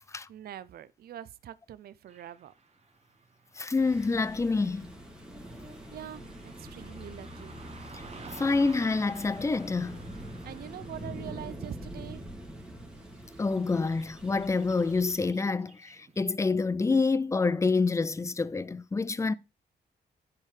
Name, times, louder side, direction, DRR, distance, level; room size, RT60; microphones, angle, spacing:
voice 1, 0.3-2.5 5.9-6.2 6.6-7.5 10.4-12.3, right 11 dB, 60° right, 0.4 m, -43 dB
Car passing by / Traffic noise roadway noise, 2.1-16.4, right 4 dB, 35° right, 1.3 m, -53 dB
voice 2, 3.6-4.9 8.3-10.0 13.4-19.3, left 4 dB, 15° left, 0.4 m, -27 dB
sound 1, 3.7-15.2, equal, 5° right, 2.3 m, -44 dB
10.5 x 4.7 x 3.2 m
cardioid pair, 100°, 18 cm